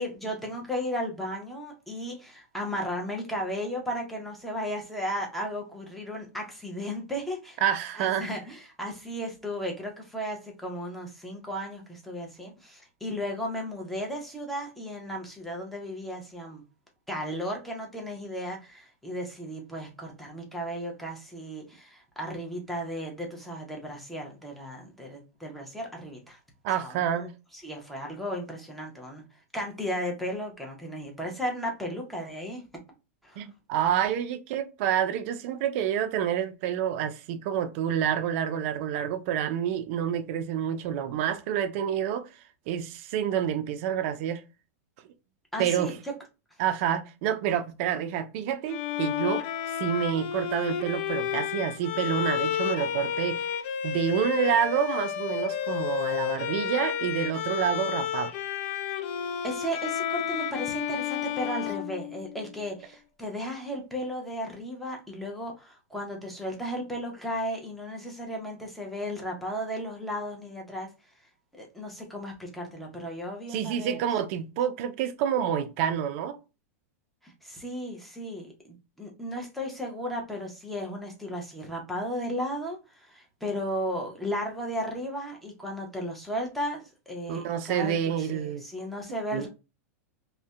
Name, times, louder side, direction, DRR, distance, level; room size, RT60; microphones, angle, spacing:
voice 1, 0.0-7.6 7.9-16.6 17.1-26.4 26.8-27.3 27.5-29.2 29.5-32.6 33.2-33.4 45.5-46.1 59.4-70.9 71.5-74.0 77.2-89.5, equal, ahead, 0.8 m, -35 dB
voice 2, 7.6-8.3 26.6-27.3 33.4-42.3 42.7-44.4 45.6-46.0 46.6-49.4 49.7-53.5 53.8-58.3 73.5-76.4 87.3-88.6 89.3-89.5, right 9 dB, 55° right, 0.4 m, -28 dB
Bowed string instrument, 48.7-62.6, left 10 dB, 55° left, 0.3 m, -31 dB
2.5 x 2.1 x 2.2 m
hypercardioid pair, 120°, 8 cm